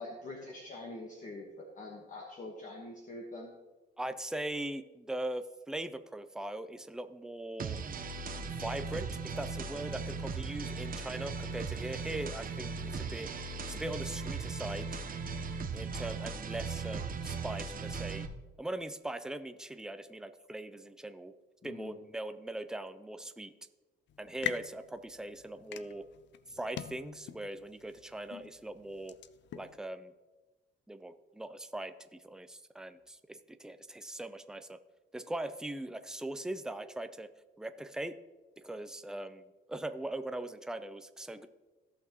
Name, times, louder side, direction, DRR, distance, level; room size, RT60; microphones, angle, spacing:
voice 1, 0.0-3.5 21.6-22.0, left 2 dB, 40° left, 0 dB, 1.4 m, -44 dB
voice 2, 4.0-7.8 8.6-13.3 13.7-15.0 15.7-18.3 18.6-21.3 21.6-23.5 24.2-26.1 26.5-29.2 29.6-30.1 30.9-34.8 35.1-37.3 37.6-38.2 38.6-41.5, right 1 dB, 5° right, 10 dB, 0.6 m, -40 dB
sound 1, 7.6-18.3, right 4 dB, 45° right, 1.0 m, -38 dB
sound 2, 24.1-29.8, left 11 dB, 65° left, 0.5 m, -44 dB
16.0 x 5.9 x 3.0 m, 1.2 s
cardioid pair, 90°, 20 cm